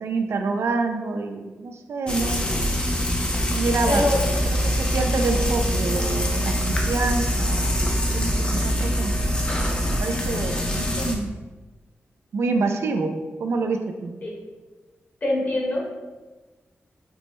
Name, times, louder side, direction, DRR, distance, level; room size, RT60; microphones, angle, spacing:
voice 1, 0.0-2.4 3.5-4.1 4.6-7.9 8.1-9.1 10.0-11.3 12.3-13.1 13.4-14.1, right 3 dB, 75° right, 5 dB, 0.4 m, -27 dB
Frying (food), 2.1-11.2, equal, 20° left, 0.5 m, -24 dB
voice 2, 3.9-4.2 14.2-14.4 15.2-15.8, left 1 dB, 45° left, -4 dB, 1.1 m, -23 dB
sound 1, 4.3-11.0, right 1 dB, 50° right, 1.0 m, -44 dB
6.0 x 2.1 x 3.0 m, 1.3 s
wide cardioid pair, 130°, 4 cm